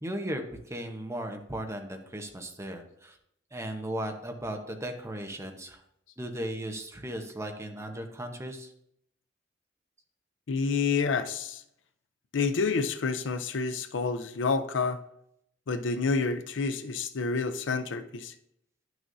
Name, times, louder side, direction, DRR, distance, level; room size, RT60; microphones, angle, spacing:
voice 1, 0.0-3.2 3.5-5.8 6.2-8.7, right 1 dB, 15° right, 4 dB, 0.9 m, -36 dB
voice 2, 10.5-11.6 12.3-15.0 15.7-18.3, left 4 dB, 75° left, 10 dB, 0.5 m, -29 dB
11.0 x 6.3 x 2.6 m, 0.75 s
head